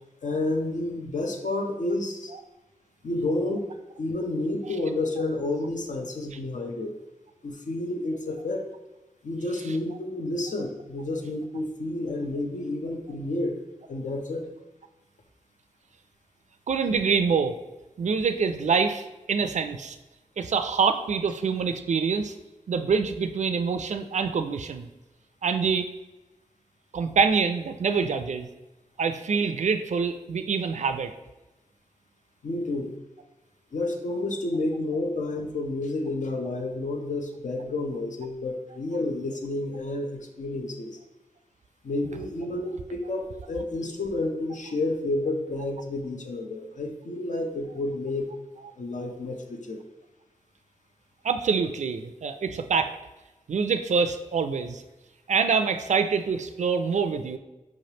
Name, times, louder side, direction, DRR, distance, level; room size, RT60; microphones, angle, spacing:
voice 1, 0.2-2.3 3.0-6.9 7.4-8.6 9.2-13.6 13.9-14.5 32.4-32.9 33.7-41.0 41.8-48.3 48.8-49.8, left 2 dB, 65° left, 3 dB, 0.6 m, -30 dB
voice 2, 16.7-17.5 18.0-20.0 20.4-22.3 22.7-24.9 25.4-25.9 26.9-28.5 29.0-31.1 51.2-52.9 53.5-54.8 55.3-57.4, right 5 dB, 60° right, 9 dB, 0.4 m, -25 dB
4.7 x 3.2 x 2.8 m, 1.1 s
cardioid pair, 50°, 14 cm